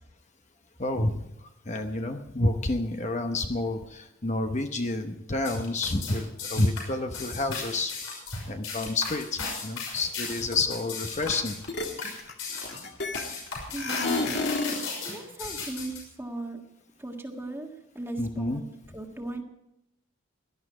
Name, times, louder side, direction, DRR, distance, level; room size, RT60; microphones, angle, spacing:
voice 1, 0.8-1.2 1.7-8.2 8.5-11.6 18.2-18.6, left 2 dB, 35° left, 6 dB, 0.9 m, -29 dB
sound 1, 5.4-16.0, left 4 dB, 85° left, 6.3 m, -36 dB
sound 2, 11.2-11.4 11.7-13.5 13.8-14.9, left 2 dB, 55° left, 2.1 m, -30 dB
voice 2, 13.7-14.5 15.0-16.6 17.0-19.4, right 2 dB, 10° right, 3 dB, 1.6 m, -38 dB
18.0 x 11.5 x 4.9 m, 0.85 s
head